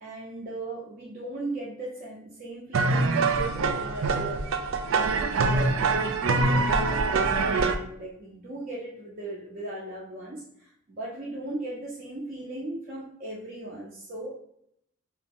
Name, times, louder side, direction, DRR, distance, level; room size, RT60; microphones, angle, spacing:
voice 1, 0.0-4.5 5.3-14.3, right 2 dB, 45° right, -7 dB, 0.8 m, -38 dB
sound 1, 2.7-7.8, right 3 dB, 80° right, 0.4 m, -24 dB
2.9 x 2.8 x 3.5 m, 0.71 s
head